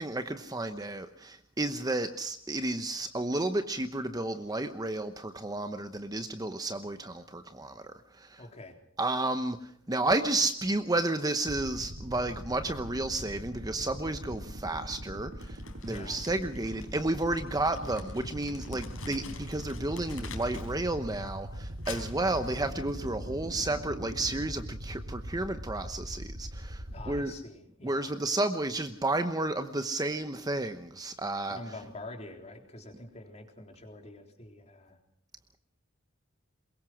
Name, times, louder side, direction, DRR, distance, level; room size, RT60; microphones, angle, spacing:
voice 1, 0.0-8.4 9.0-27.3 27.8-31.6, right 2 dB, 20° right, 8 dB, 0.9 m, -32 dB
voice 2, 8.4-8.8 15.8-16.2 26.9-28.1 31.5-35.0, left 2 dB, 35° left, 3 dB, 3.7 m, -46 dB
sound 1, 11.5-27.2, equal, 65° right, 2.7 m, -41 dB
Crumpling crinkling, 15.4-20.8 21.1-23.1, left 3 dB, 80° left, 4.4 m, -47 dB
23.0 x 22.0 x 6.2 m, 0.66 s
head